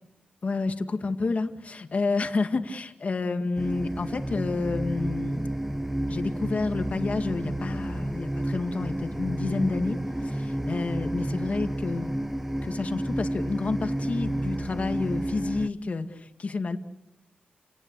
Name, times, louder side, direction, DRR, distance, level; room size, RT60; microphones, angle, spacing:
voice 1, 0.4-5.4 6.1-12.1 12.6-16.8, left 3 dB, 50° left, 6 dB, 2.1 m, -29 dB
sound 1, 3.6-15.7, right 1 dB, 10° right, 1.0 m, -31 dB
29.5 x 19.0 x 8.4 m, 0.95 s
cardioid pair, 85°, 3 cm